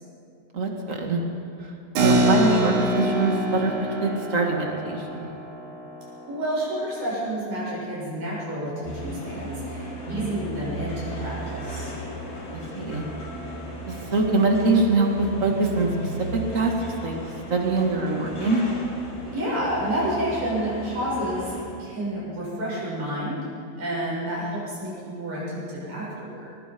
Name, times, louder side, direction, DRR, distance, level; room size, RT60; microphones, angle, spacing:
voice 1, 0.5-1.2 1.6-1.7 2.0-3.7 4.0-5.3 10.1-10.3 12.5-13.0 13.9-16.7 17.0-17.2 17.5-18.6, right 3 dB, 30° right, 1 dB, 1.7 m, -23 dB
Keyboard (musical), 2.0-8.0, right 1 dB, 90° right, 4.6 m, -27 dB
voice 2, 6.3-11.9 19.2-23.5 23.8-26.5, right 1 dB, 60° right, -6 dB, 8.6 m, -29 dB
sound 1, 8.8-21.7, equal, 75° left, 8.2 m, -36 dB
22.0 x 21.5 x 5.4 m, 2.6 s
omnidirectional pair, 4.5 m